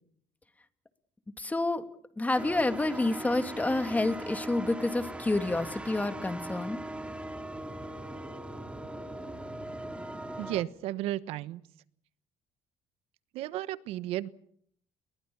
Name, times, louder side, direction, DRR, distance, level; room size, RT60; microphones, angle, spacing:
voice 1, 1.4-1.8 2.2-6.8, left 2 dB, 15° left, 9 dB, 2.6 m, -29 dB
sound 1, 2.4-10.6, right 1 dB, 10° right, 3.2 m, -40 dB
voice 2, 10.4-11.6 13.3-14.3, right 14 dB, 80° right, 15 dB, 1.1 m, -33 dB
29.5 x 22.0 x 7.2 m, 0.66 s
supercardioid pair, 90°, 10 cm